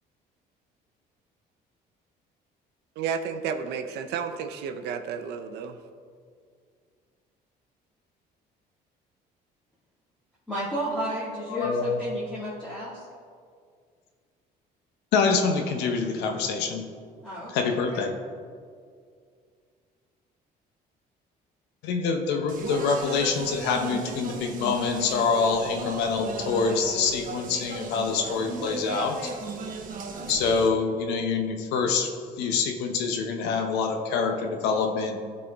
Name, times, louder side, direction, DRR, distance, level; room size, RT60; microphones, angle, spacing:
voice 1, 3.0-5.8, right 6 dB, 85° right, 8 dB, 0.5 m, -32 dB
voice 2, 10.5-13.1 17.2-18.0, right 1 dB, 5° left, -10 dB, 1.7 m, -33 dB
voice 3, 11.5-12.0 15.1-16.9 17.5-18.1 21.8-29.3 30.3-32.1 32.4-35.2, left 5 dB, 90° left, 4 dB, 0.7 m, -26 dB
Speech, 22.5-30.7, right 4 dB, 55° right, 0.9 m, -36 dB
12.0 x 4.2 x 3.4 m, 2.1 s
cardioid pair, 110°, 17 cm